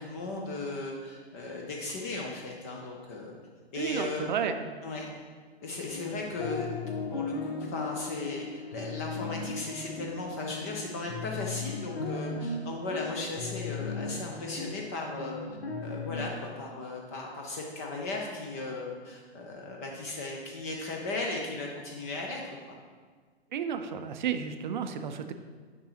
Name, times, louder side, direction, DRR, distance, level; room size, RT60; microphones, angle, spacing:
voice 1, 0.0-3.4 3.7-4.3 4.8-5.1 5.6-6.8 7.1-22.4 22.7-22.8, left 2 dB, 15° left, 0 dB, 0.3 m, -36 dB
voice 2, 3.8-4.7 23.5-25.3, right 7 dB, 45° right, 8 dB, 0.5 m, -32 dB
sound 1, 5.7-16.3, left 4 dB, 70° left, 0.9 m, -37 dB
8.4 x 5.3 x 2.9 m, 1.5 s
figure-of-eight pair, 110°, 33 cm